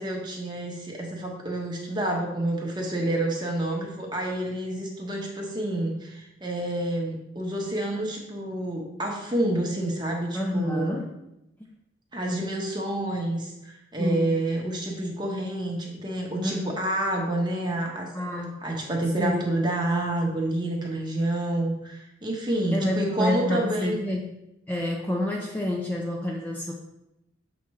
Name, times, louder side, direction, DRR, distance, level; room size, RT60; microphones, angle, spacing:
voice 1, 0.0-10.9 12.1-18.1 18.6-24.0, right 1 dB, 20° right, -1 dB, 1.0 m, -28 dB
voice 2, 10.3-11.1 14.0-14.3 16.4-16.7 18.1-18.7 19.2-19.4 22.7-24.3 24.7-26.7, left 1 dB, 10° left, -1 dB, 0.5 m, -28 dB
7.3 x 3.2 x 4.7 m, 0.88 s
head